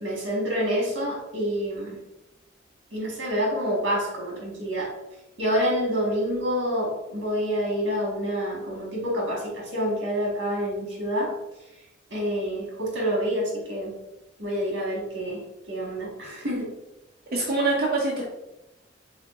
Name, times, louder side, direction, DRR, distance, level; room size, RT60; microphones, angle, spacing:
voice 1, 0.0-2.0 2.9-4.9 5.4-11.3 12.1-13.9 14.4-16.7, equal, 75° right, -2 dB, 1.6 m, -27 dB
voice 2, 17.3-18.2, right 2 dB, 50° right, -5 dB, 0.8 m, -24 dB
5.0 x 3.7 x 2.5 m, 0.93 s
head